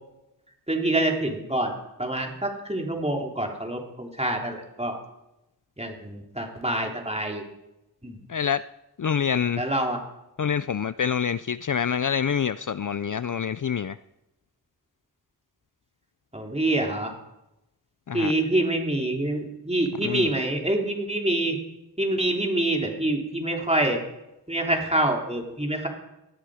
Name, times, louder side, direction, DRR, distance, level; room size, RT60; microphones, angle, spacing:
voice 1, 0.7-1.7 2.0-5.0 5.8-7.4 8.0-8.2 9.6-10.0 16.3-17.1 18.1-21.6 22.0-24.0 24.5-25.9, right 1 dB, 15° right, 1 dB, 3.4 m, -26 dB
voice 2, 8.3-8.6 9.0-9.6 10.4-14.0 18.1-18.3 20.0-20.3, left 7 dB, 50° left, 15 dB, 0.5 m, -26 dB
20.0 x 13.0 x 5.0 m, 0.91 s
wide cardioid pair, 40°, 40 cm